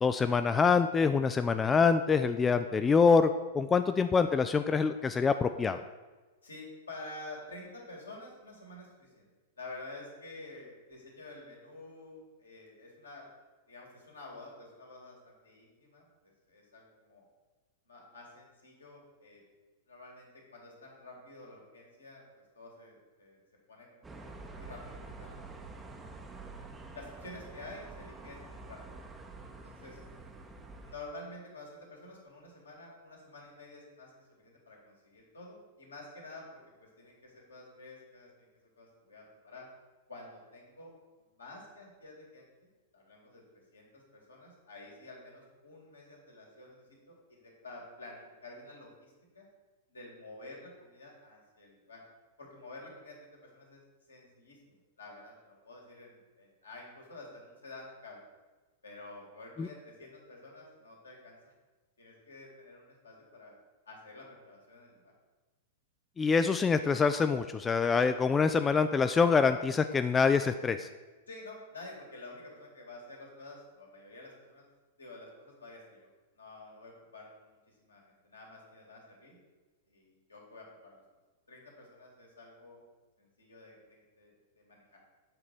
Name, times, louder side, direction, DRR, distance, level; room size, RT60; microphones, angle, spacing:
voice 1, 0.0-5.8 59.6-59.7 66.2-70.9, left 5 dB, 15° left, 9 dB, 0.3 m, -25 dB
voice 2, 6.4-9.3 9.6-13.3 13.7-17.2 17.9-19.4 19.9-22.2 22.5-23.4 23.7-25.9 26.9-29.1 29.6-30.0 30.8-38.5 38.8-39.7 40.1-40.9 41.3-42.7 42.9-43.4 43.7-49.5 49.9-52.0 52.4-53.8 54.1-58.2 58.8-61.5 62.0-63.6 63.9-65.1 71.3-74.7 75.0-76.1 76.3-79.4 79.9-81.0 81.5-82.8 83.2-85.0, left 2 dB, 75° left, -2 dB, 2.5 m, -50 dB
sound 1, 24.0-31.0, right 3 dB, 10° right, 0.8 m, -47 dB
7.9 x 4.0 x 6.8 m, 1.3 s
figure-of-eight pair, 100°, 0 cm